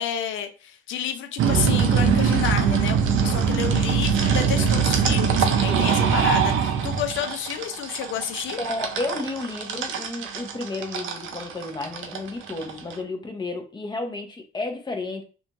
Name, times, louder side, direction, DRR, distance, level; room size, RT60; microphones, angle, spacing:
voice 1, 0.0-8.6, left 9 dB, 75° left, 0.5 m, -30 dB
sound 1, 1.4-12.9, right 7 dB, 80° right, 0.5 m, -22 dB
voice 2, 5.7-6.1 6.5-6.7 8.6-15.2, left 2 dB, 20° left, 0.7 m, -32 dB
2.5 x 2.2 x 2.9 m
cardioid pair, 90°, 20 cm